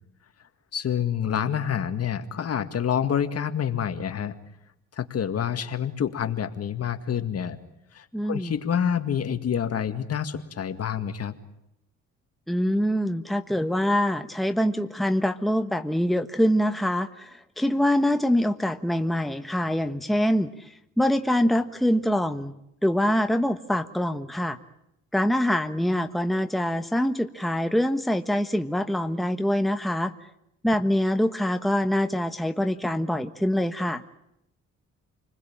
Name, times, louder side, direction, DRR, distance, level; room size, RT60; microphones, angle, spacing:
voice 1, 0.7-4.3 4.9-7.6 7.9-11.3, left 8 dB, 55° left, 9 dB, 2.0 m, -27 dB
voice 2, 8.1-8.5 12.5-20.5 21.0-22.5 22.8-24.6 25.1-30.1 30.6-34.0, equal, ahead, 8 dB, 1.2 m, -24 dB
29.0 x 21.0 x 8.8 m, 0.82 s
cardioid pair, 90°, 30 cm